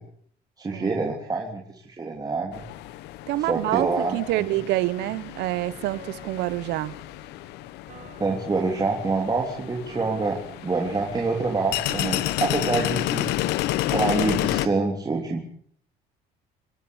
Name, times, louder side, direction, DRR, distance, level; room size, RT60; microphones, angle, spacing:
voice 1, 0.6-2.6 3.5-4.5 8.2-13.3 13.9-15.4, right 3 dB, 25° right, 3.3 m, -26 dB
sound 1, 2.5-14.7, left 15 dB, 90° left, 1.1 m, -31 dB
voice 2, 3.3-6.9, right 16 dB, 85° right, 1.1 m, -27 dB
Piano, 5.9-13.9, right 3 dB, 50° right, 5.1 m, -50 dB
26.5 x 12.5 x 8.6 m
cardioid pair, 110°, 17 cm